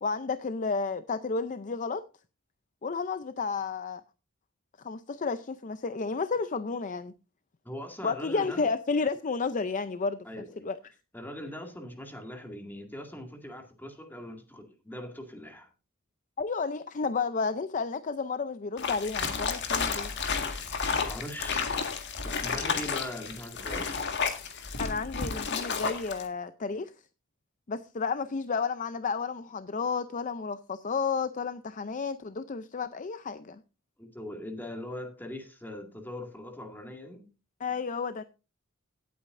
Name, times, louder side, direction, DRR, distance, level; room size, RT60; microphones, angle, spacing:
voice 1, 0.0-2.0 2.8-4.0 4.8-7.1 8.0-10.8 16.4-20.1 24.8-26.9 27.7-33.6 37.6-38.2, left 4 dB, 40° left, 0.5 m, -32 dB
voice 2, 7.6-8.7 10.2-10.7 11.1-15.7 21.1-21.9 22.2-24.1 34.0-37.3, left 1 dB, 10° left, 2.1 m, -41 dB
sound 1, 18.8-26.2, left 5 dB, 55° left, 1.8 m, -31 dB
17.0 x 8.6 x 2.6 m
head